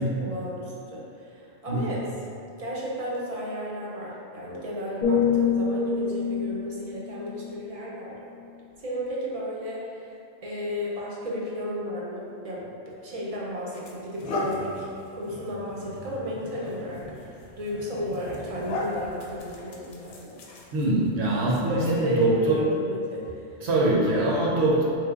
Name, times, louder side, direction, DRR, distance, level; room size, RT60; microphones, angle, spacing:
voice 1, 0.0-2.0 2.6-8.2 8.8-10.1 10.4-12.7 13.0-14.9 15.1-17.0 17.6-20.3 21.7-23.4, equal, 45° right, -5 dB, 0.5 m, -33 dB
sound 1, 5.0-8.9 9.4-9.7, left 6 dB, 55° left, 0.6 m, -28 dB
sound 2, 12.9-13.1 13.7-21.1, left 2 dB, 90° left, 0.9 m, -37 dB
voice 2, 20.7-22.6 23.6-24.8, right 2 dB, 70° right, -4 dB, 1.0 m, -23 dB
4.0 x 3.1 x 2.4 m, 2.6 s
omnidirectional pair, 1.2 m